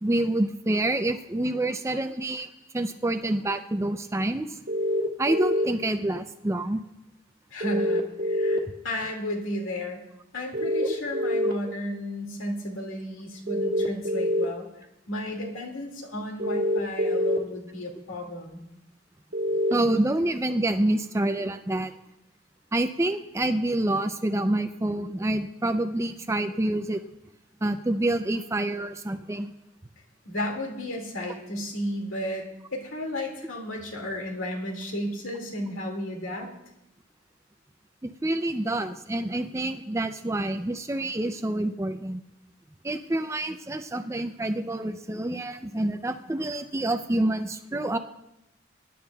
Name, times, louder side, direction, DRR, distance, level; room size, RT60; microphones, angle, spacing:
voice 1, 0.0-2.5 2.7-4.6 5.2-6.8 10.8-10.9 11.7-11.8 19.7-21.9 22.7-27.0 27.6-29.5 38.0-42.2 42.8-48.0, right 1 dB, 15° right, 8 dB, 0.4 m, -27 dB
sound 1, 4.7-5.7 7.6-8.6 10.5-11.5 13.5-14.4 16.4-17.4 19.3-19.7, equal, 55° right, 1.4 m, -25 dB
voice 2, 7.5-10.0 10.3-14.7 15.1-18.6 30.3-36.5, left 1 dB, 85° left, 1 dB, 2.2 m, -33 dB
24.0 x 11.0 x 2.3 m, 0.87 s
head